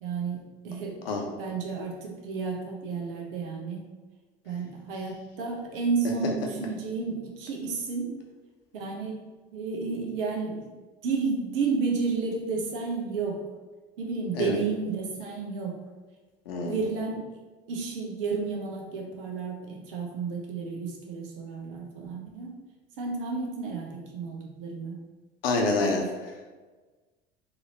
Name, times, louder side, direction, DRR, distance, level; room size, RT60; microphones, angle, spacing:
voice 1, 0.0-1.0 1.4-3.9 4.4-8.2 8.7-10.7 11.0-13.4 14.0-15.8 16.6-17.2 17.7-22.5 23.0-25.0, right 4 dB, 65° right, 0 dB, 0.9 m, -32 dB
voice 2, 16.5-16.9 25.4-26.3, left 3 dB, 75° left, 1 dB, 0.8 m, -27 dB
4.1 x 2.8 x 2.9 m, 1.3 s
figure-of-eight pair, 65°, 30 cm